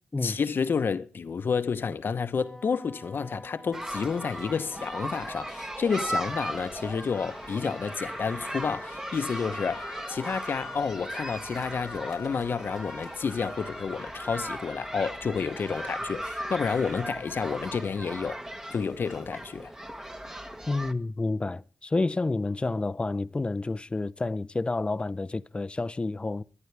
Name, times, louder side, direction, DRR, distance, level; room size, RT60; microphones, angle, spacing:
voice 1, 0.2-18.4 18.7-19.7, left 5 dB, 60° left, 0.9 m, -30 dB
Wind instrument woodwind instrument, 2.4-5.8, equal, 10° left, 1.5 m, -49 dB
sound 1, 3.7-20.9, right 1 dB, 15° right, 1.2 m, -37 dB
Alarm, 5.6-16.6, left 6 dB, 80° left, 1.4 m, -49 dB
voice 2, 20.7-26.4, left 3 dB, 25° left, 0.6 m, -29 dB
24.5 x 11.0 x 3.4 m
cardioid pair, 70°, 4 cm